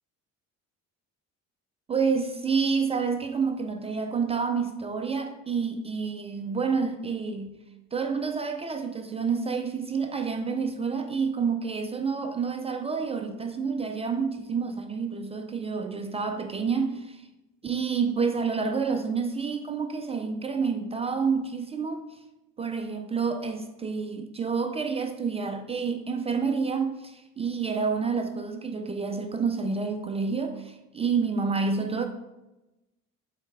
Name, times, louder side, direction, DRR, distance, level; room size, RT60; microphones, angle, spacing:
voice 1, 1.9-7.5 7.9-17.3 17.6-22.0 22.6-32.1, right 5 dB, 20° right, 0.3 m, -28 dB
8.1 x 4.2 x 3.3 m
cardioid pair, 145°, 31 cm